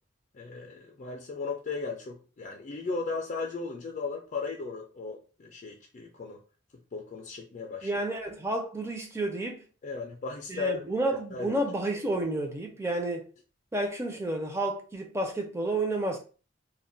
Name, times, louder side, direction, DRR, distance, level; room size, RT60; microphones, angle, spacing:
voice 1, 0.3-6.4 6.9-7.9 9.8-10.8 11.3-11.6, left 4 dB, 40° left, 0.4 m, -36 dB
voice 2, 7.8-9.6 10.5-13.2 13.7-16.2, right 2 dB, 15° right, 0.5 m, -30 dB
2.2 x 2.1 x 3.8 m
head